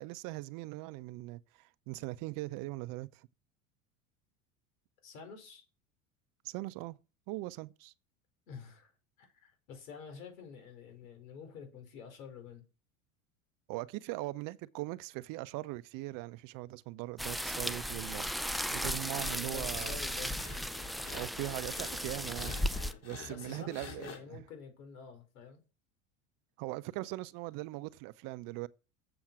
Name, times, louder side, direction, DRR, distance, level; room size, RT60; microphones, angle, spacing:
voice 1, 0.0-3.3 6.4-7.0 7.3-7.9 13.7-20.3 21.1-24.4 26.6-28.7, right 19 dB, 50° right, 0.6 m, -41 dB
voice 2, 5.0-5.6 8.5-8.9 9.2-12.6 19.4-20.4 23.3-25.6, left 6 dB, 75° left, 4.7 m, -49 dB
sound 1, 17.2-22.9, equal, ahead, 0.4 m, -36 dB
sound 2, 19.1-24.2, left 6 dB, 35° left, 3.4 m, -49 dB
7.9 x 7.1 x 6.2 m
hypercardioid pair, 90°, 41 cm